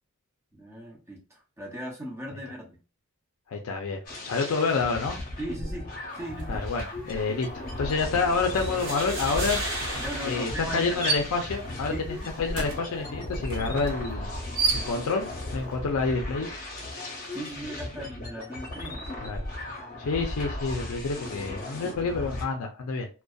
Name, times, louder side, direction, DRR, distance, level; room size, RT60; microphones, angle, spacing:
voice 1, 0.5-2.8 5.4-6.7 10.0-11.0 11.9-12.2 17.3-19.3 21.8-22.2, right 1 dB, 10° right, 0.6 m, -38 dB
voice 2, 3.5-5.2 6.5-9.6 10.2-14.3 14.9-16.5 19.2-19.4 20.0-23.1, left 4 dB, 75° left, 0.4 m, -28 dB
sound 1, 4.1-22.5, left 1 dB, 40° left, 0.7 m, -37 dB
sound 2, 6.3-6.6 6.9-15.4, right 3 dB, 75° right, 0.6 m, -34 dB
sound 3, 8.5-11.6, right 1 dB, 40° right, 0.9 m, -35 dB
2.5 x 2.1 x 2.3 m
head